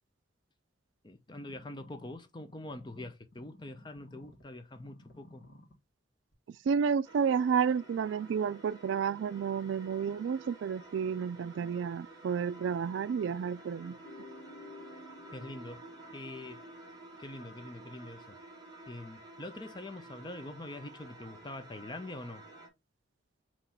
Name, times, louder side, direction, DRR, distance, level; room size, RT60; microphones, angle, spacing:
voice 1, 1.0-5.4 15.3-15.8 16.1-16.6 17.2-18.4 18.9-22.4, left 2 dB, 25° left, 0.5 m, -44 dB
sound 1, 1.3-4.4 4.7-5.7 6.3-6.4, left 1 dB, 70° left, 1.6 m, -55 dB
voice 2, 6.7-14.0, right 6 dB, 80° right, 0.3 m, -31 dB
sound 2, 7.0-22.7, right 2 dB, 20° right, 1.1 m, -51 dB
sound 3, 14.0-17.6, left 3 dB, 50° left, 1.0 m, -53 dB
3.9 x 3.0 x 4.3 m
head